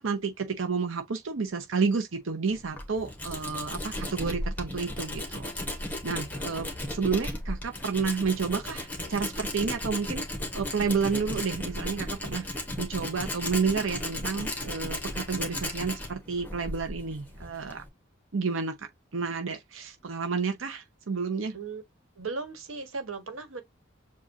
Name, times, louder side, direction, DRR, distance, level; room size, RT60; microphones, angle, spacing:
voice 1, 0.0-5.5 6.0-10.3 10.5-17.8 18.3-21.5, right 5 dB, 70° right, 0.7 m, -30 dB
Tools, 2.5-17.9, left 1 dB, 10° left, 1.2 m, -35 dB
voice 2, 22.2-23.6, right 4 dB, 85° right, 1.4 m, -36 dB
7.2 x 2.4 x 2.7 m
head